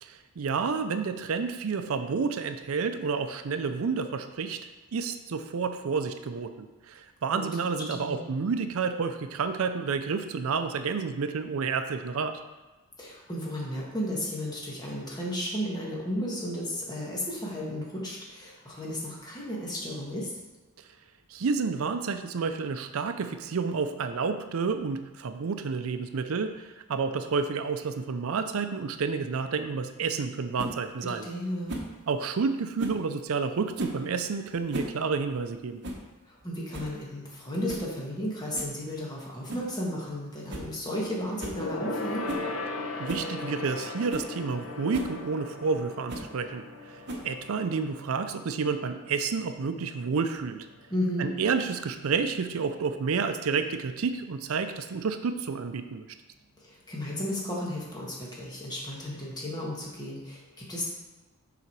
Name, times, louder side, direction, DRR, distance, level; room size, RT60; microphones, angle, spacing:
voice 1, 0.0-4.6 4.9-12.4 21.3-31.3 32.1-35.8 43.0-50.7 51.2-56.0, right 5 dB, 70° right, 9 dB, 0.5 m, -30 dB
voice 2, 7.7-8.3 13.0-20.3 31.0-31.7 36.3-42.3 50.9-51.3 56.6-60.8, equal, 20° left, -4 dB, 1.7 m, -34 dB
sound 1, 30.6-30.8 31.7-31.9 32.8-33.0 33.8-34.0 34.5-35.0 35.2-35.3 35.8-36.1 36.4-36.5 36.7-37.0 37.7-37.9 38.5-38.8 39.5-39.7 40.1-40.2 40.5-40.7 41.0-41.1 41.4-41.6 42.3-42.5 43.1-43.3 43.8-43.9 44.1-44.3 44.9-45.1 46.1-46.3 47.1-47.4, right 1 dB, 55° right, 1.0 m, -36 dB
Gong, 41.5-51.3 51.6-51.9 52.2-52.3, left 2 dB, 75° left, 0.7 m, -38 dB
6.9 x 4.9 x 4.7 m, 1.1 s
head